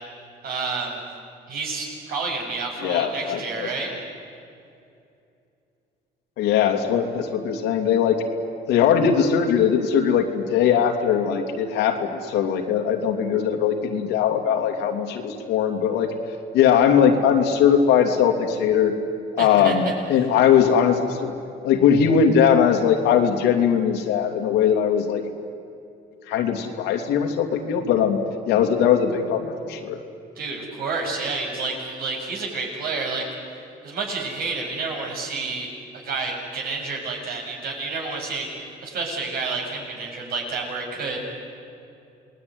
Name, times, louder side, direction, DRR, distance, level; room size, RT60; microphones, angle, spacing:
voice 1, 0.4-1.0 1.5-3.9 19.4-19.7 30.4-33.2 33.8-35.7 36.0-38.5 38.8-41.2, right 4 dB, 65° right, 0 dB, 7.5 m, -29 dB
voice 2, 2.8-3.7 6.4-8.2 8.7-16.1 16.5-18.9 19.3-21.3 21.6-25.2 26.3-28.2 28.5-30.0, left 8 dB, 90° left, 4 dB, 2.8 m, -20 dB
28.0 x 20.0 x 9.7 m, 2.6 s
cardioid pair, 110°, 17 cm